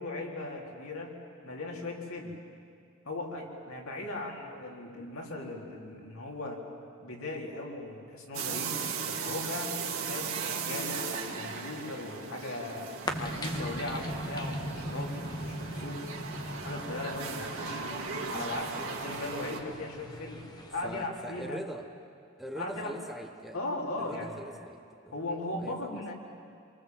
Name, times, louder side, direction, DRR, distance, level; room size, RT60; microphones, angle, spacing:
voice 1, 0.0-2.4 3.0-6.6 7.0-8.8 9.1-12.9 13.2-16.0 16.5-17.8 18.3-20.4 20.7-21.6 22.6-22.9 23.5-24.4 25.1-26.1, left 2 dB, 90° left, -1 dB, 4.3 m, -38 dB
sound 1, 8.3-19.6, right 5 dB, 85° right, 2.5 m, -37 dB
sound 2, 13.1-21.1, equal, 20° left, 1.5 m, -39 dB
voice 2, 20.8-21.9 22.4-23.6 24.0-25.1 25.6-26.1, right 1 dB, ahead, 4 dB, 1.1 m, -42 dB
27.0 x 23.5 x 7.8 m, 2.4 s
head